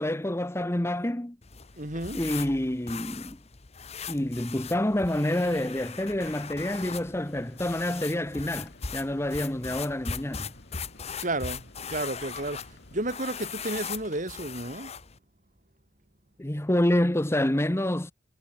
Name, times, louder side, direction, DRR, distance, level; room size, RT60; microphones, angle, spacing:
voice 1, 0.0-1.4 2.1-3.4 4.1-10.5 16.4-18.1, left 1 dB, 15° left, 0.9 m, -27 dB
sound 1, 1.4-15.2, left 6 dB, 30° left, 1.1 m, -40 dB
voice 2, 1.8-2.2 11.2-12.6 12.9-14.9, right 2 dB, 40° right, 3.4 m, -32 dB
sound 2, 6.2-13.1, left 1 dB, 55° left, 7.5 m, -54 dB
head